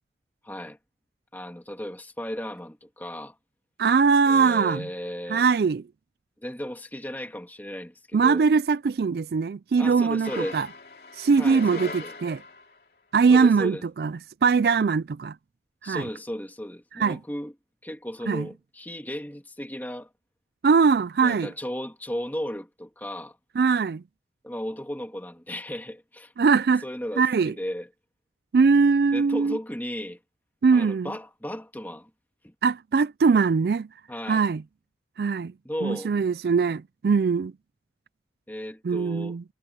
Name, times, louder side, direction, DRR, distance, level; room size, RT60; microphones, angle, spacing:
voice 1, 0.4-0.8 1.3-3.4 4.3-5.4 6.4-8.5 9.8-10.6 11.4-12.2 13.3-13.8 15.8-17.5 17.8-20.1 21.2-23.4 24.4-26.3 26.8-27.9 29.1-30.2 30.7-32.1 32.4-32.5 34.1-34.5 35.6-36.1 38.5-39.4, equal, 10° left, 2.6 m, -35 dB
voice 2, 3.8-4.9 5.3-5.8 8.1-10.7 11.2-12.4 13.1-15.3 15.8-16.0 17.0-17.2 18.3-18.5 20.6-21.5 23.6-24.0 26.4-26.8 27.2-27.5 28.5-29.6 30.6-31.1 32.6-33.9 34.3-34.6 35.2-35.5 35.8-37.5 38.8-39.4, right 5 dB, 60° right, 0.3 m, -21 dB
sound 1, 10.2-12.8, left 3 dB, 55° left, 2.9 m, -40 dB
head